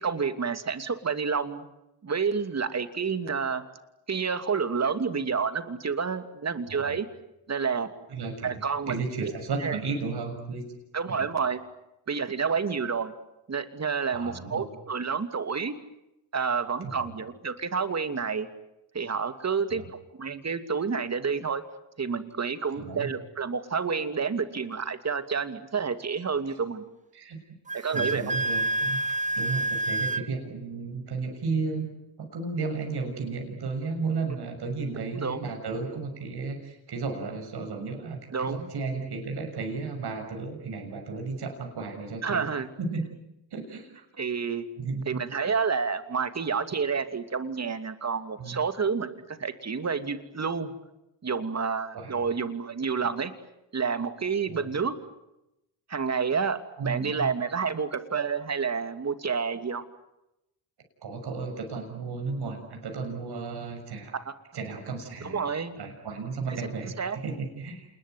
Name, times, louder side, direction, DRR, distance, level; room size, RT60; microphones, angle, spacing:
voice 1, 0.0-1.6 2.0-3.6 4.1-7.1 7.5-7.9 8.4-8.9 9.2-9.3 9.6-9.8 10.9-11.6 12.1-13.1 13.5-15.7 16.3-18.5 18.9-19.8 20.2-21.6 22.0-26.8 27.7-28.2 35.1-35.4 38.3-38.7 42.2-42.7 44.2-44.7 45.1-50.7 51.2-53.3 53.7-55.0 55.9-59.8 64.3-64.4 65.2-65.7 66.5-66.6 67.0-67.2, right 5 dB, 35° right, 10 dB, 2.8 m, -29 dB
voice 2, 8.1-10.6 11.1-11.3 14.1-14.7 16.8-17.1 19.7-19.9 22.7-23.1 26.5-26.6 27.1-27.4 27.9-29.0 29.4-31.9 32.2-42.5 42.8-43.1 43.5-44.1 44.8-45.2 48.4-48.6 51.9-52.2 54.5-54.7 56.8-57.3 61.0-64.1 64.5-65.5 65.8-67.9, right 4 dB, 60° right, 3 dB, 6.7 m, -34 dB
Wind instrument woodwind instrument, 27.7-30.3, right 2 dB, 15° right, 0.9 m, -28 dB
28.0 x 21.0 x 9.5 m, 0.90 s
supercardioid pair, 70°, 45 cm